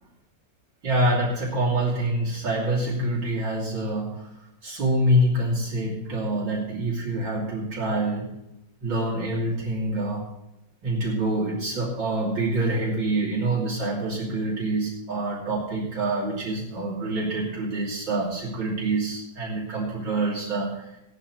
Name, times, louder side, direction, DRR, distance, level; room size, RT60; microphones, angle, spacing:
voice 1, 0.8-4.3 4.6-8.3 8.8-10.3 10.8-20.9, right 1 dB, 90° right, -6 dB, 3.7 m, -26 dB
18.0 x 11.5 x 3.2 m, 0.86 s
omnidirectional pair, 1.9 m